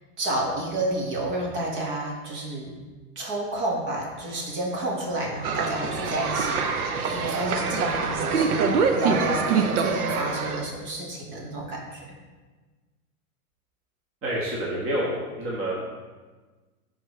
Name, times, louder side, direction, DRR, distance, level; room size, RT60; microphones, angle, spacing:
voice 1, 0.2-2.7 3.2-12.0, right 1 dB, 45° right, -1 dB, 1.7 m, -30 dB
sound 1, 5.4-10.7, right 5 dB, 75° right, 0.8 m, -25 dB
voice 2, 14.2-15.7, right 1 dB, 30° right, -5 dB, 1.4 m, -28 dB
10.5 x 4.1 x 3.2 m, 1.3 s
hypercardioid pair, 120°, 44 cm